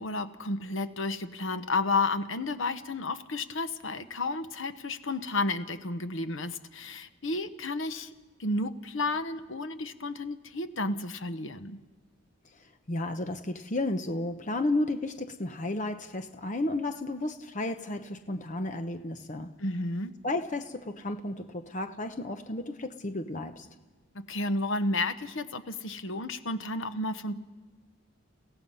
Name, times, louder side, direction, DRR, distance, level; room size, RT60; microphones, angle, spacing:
voice 1, 0.0-8.1 8.4-11.8 19.6-20.1 24.1-27.4, left 2 dB, 65° left, 9 dB, 1.0 m, -32 dB
voice 2, 12.9-19.5 20.2-23.7, left 2 dB, 35° left, 7 dB, 0.8 m, -32 dB
29.5 x 16.5 x 5.6 m, 1.3 s
head